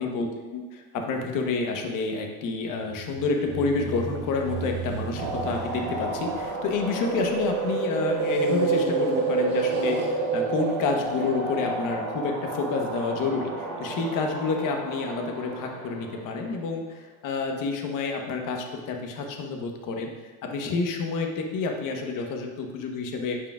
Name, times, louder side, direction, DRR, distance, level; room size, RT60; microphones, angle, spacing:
voice 1, 0.0-20.1 20.4-23.4, left 4 dB, 50° left, 3 dB, 1.1 m, -29 dB
sound 1, 2.7-7.4 8.1-11.5, right 3 dB, 25° right, 0.8 m, -35 dB
sound 2, 5.2-16.4, right 3 dB, 85° right, 1.6 m, -29 dB
8.6 x 4.9 x 2.4 m, 1.2 s
supercardioid pair, 105°, 42 cm